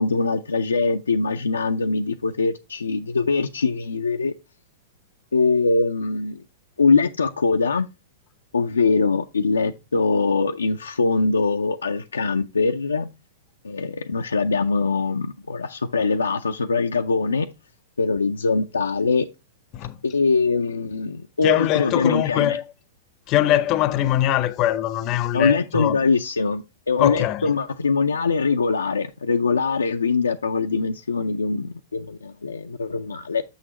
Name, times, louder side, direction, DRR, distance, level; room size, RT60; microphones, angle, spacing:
voice 1, 0.0-4.3 5.3-6.4 6.8-7.9 8.5-13.1 13.6-17.5 18.0-19.3 20.0-22.6 25.3-33.4, left 4 dB, 85° left, 0.4 m, -22 dB
voice 2, 21.4-22.6 23.3-26.0 27.0-27.5, left 13 dB, 40° left, 0.6 m, -22 dB
7.1 x 6.3 x 2.9 m
hypercardioid pair, 110°, 0 cm